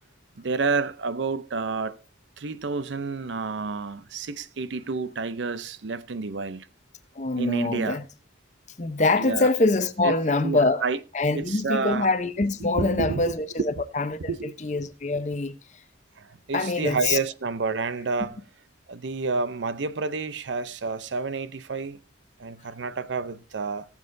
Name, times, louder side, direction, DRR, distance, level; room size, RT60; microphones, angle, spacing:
voice 1, 0.4-2.0 2.4-6.7 7.4-8.0 9.2-9.5 10.0-10.1 10.4-11.0 11.3-12.1 12.7-13.3 14.3-14.5 16.2-18.4 18.9-22.0 22.4-23.9, right 4 dB, 80° right, 0.6 m, -29 dB
voice 2, 7.2-8.0 8.8-10.8 11.1-15.6 16.5-17.2, left 2 dB, 40° left, 0.8 m, -24 dB
18.0 x 7.2 x 2.6 m
head